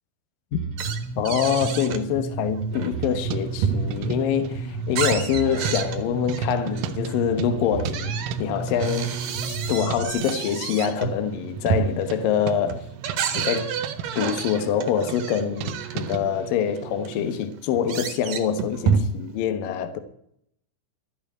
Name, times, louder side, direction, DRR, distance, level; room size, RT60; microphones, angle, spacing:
Bass guitar, 0.5-10.1, right 3 dB, 45° right, 2.0 m, -32 dB
sound 1, 0.8-2.1 2.5-4.2 4.6-7.2 7.8-16.1 16.8-16.9 17.1-19.4, right 7 dB, 65° right, 2.3 m, -29 dB
voice 1, 1.2-8.1 8.4-9.1 9.5-12.9 13.3-13.8 14.2-20.0, left 8 dB, 85° left, 1.9 m, -25 dB
sound 2, 2.7-17.4, right 9 dB, 85° right, 3.3 m, -37 dB
13.0 x 8.8 x 9.1 m
omnidirectional pair, 5.8 m